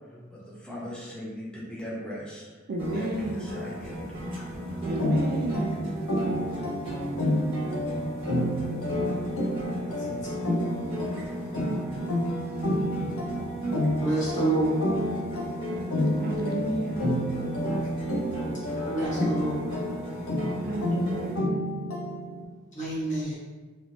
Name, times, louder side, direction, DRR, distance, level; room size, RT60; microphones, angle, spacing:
voice 1, 0.3-2.5 2.8-4.1, equal, 5° left, -6 dB, 0.7 m, -39 dB
voice 2, 2.7-3.5 4.9-5.9 12.5-13.2 16.2-17.1 20.6-21.7, right 2 dB, 50° right, 1 dB, 0.4 m, -32 dB
sound 1, 2.8-21.4, right 1 dB, 25° right, 1.0 m, -34 dB
sound 2, 5.0-22.4, equal, 85° left, 0.6 m, -30 dB
voice 3, 14.0-14.7 18.9-19.8 22.7-23.4, right 2 dB, 40° left, -7 dB, 1.1 m, -28 dB
3.2 x 2.8 x 2.6 m, 1.3 s
head